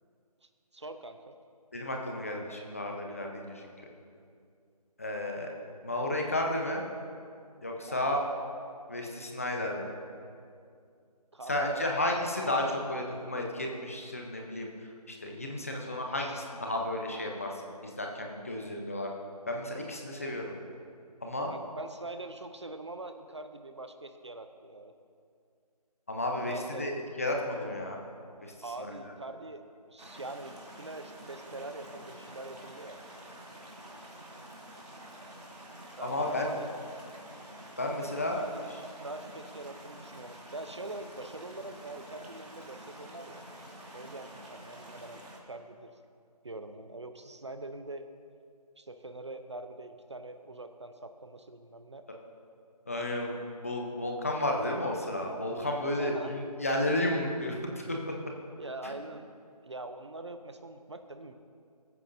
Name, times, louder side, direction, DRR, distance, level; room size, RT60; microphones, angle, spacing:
voice 1, 0.4-1.3 7.9-8.1 11.3-11.8 16.2-16.5 21.3-24.9 26.5-26.9 28.6-29.6 29.9-33.0 36.0-36.7 37.9-38.7 39.0-43.4 43.9-45.9 46.4-48.1 48.8-52.1 56.0-56.3 58.6-59.3 59.6-61.3, right 2 dB, 45° right, 8 dB, 0.6 m, -43 dB
voice 2, 1.7-3.7 5.0-5.5 5.8-6.8 7.6-8.3 8.9-10.0 11.5-19.1 19.5-20.6 21.2-21.5 26.1-28.0 28.4-28.5 28.8-29.1 36.0-36.5 37.8-38.4 52.9-53.3 53.6-58.1 58.8-58.9, left 1 dB, 20° left, 1 dB, 0.8 m, -32 dB
sound 1, 30.0-45.4, right 1 dB, 70° right, 3.0 m, -48 dB
22.0 x 9.2 x 2.6 m, 2.3 s
figure-of-eight pair, 170°, 21 cm